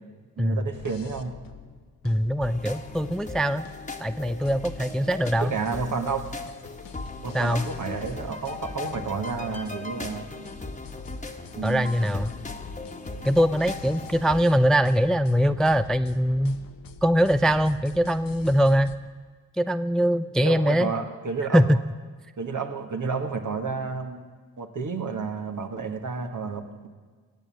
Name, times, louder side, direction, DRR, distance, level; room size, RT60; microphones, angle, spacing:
voice 1, 0.4-1.3 5.4-6.4 7.2-10.4 11.6-12.0 20.4-21.8 22.4-24.2 24.6-26.9, right 5 dB, 55° right, 5 dB, 1.8 m, -31 dB
sound 1, 0.7-19.0, left 6 dB, 65° left, 1.0 m, -45 dB
voice 2, 2.0-3.6 4.0-5.5 7.3-7.6 11.6-12.3 13.2-16.6 17.0-18.9 19.6-20.9 21.5-21.8, equal, ahead, 13 dB, 0.4 m, -22 dB
sound 2, 2.4-14.5, left 2 dB, 20° left, 1.5 m, -39 dB
15.0 x 8.6 x 7.7 m, 1.5 s
supercardioid pair, 45°, 37 cm